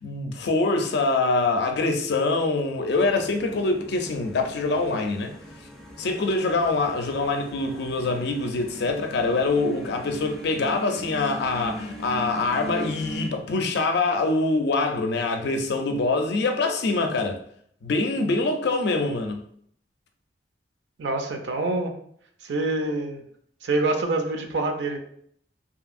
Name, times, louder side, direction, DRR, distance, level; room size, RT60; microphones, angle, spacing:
voice 1, 0.0-5.3 6.0-17.4 17.8-19.4, left 3 dB, 65° left, 0.4 m, -24 dB
sound 1, 3.0-13.3, equal, 5° left, 0.4 m, -40 dB
voice 2, 21.0-21.9 22.4-23.2 23.6-25.0, right 2 dB, 75° right, 0.4 m, -26 dB
2.8 x 2.6 x 2.4 m
head